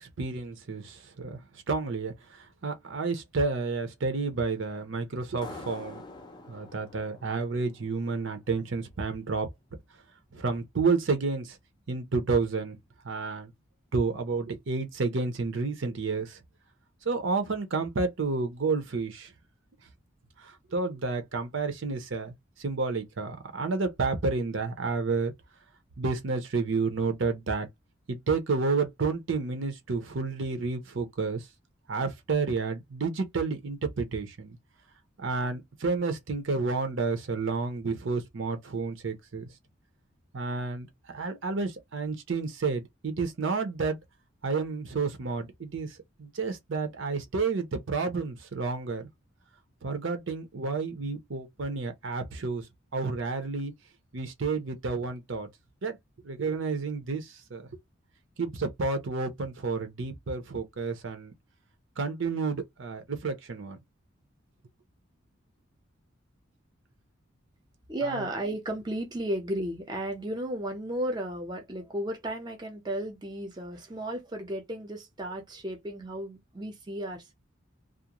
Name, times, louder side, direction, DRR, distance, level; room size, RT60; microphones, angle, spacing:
voice 1, 0.0-1.4 1.7-6.0 6.5-9.5 10.3-11.6 11.9-12.8 13.0-13.5 13.9-16.4 17.0-19.3 20.4-25.3 26.0-27.7 28.1-31.5 31.9-34.6 35.2-39.4 40.3-44.0 44.4-49.1 49.8-52.7 52.9-53.7 54.1-55.5 55.8-56.0 56.2-57.7 58.4-61.3 62.0-63.8 68.0-68.3, right 4 dB, 70° right, 0.7 m, -30 dB
sound 1, 5.4-8.7, left 3 dB, 20° left, 0.5 m, -46 dB
voice 2, 67.9-77.3, right 1 dB, 20° right, 0.6 m, -34 dB
2.4 x 2.1 x 2.9 m
head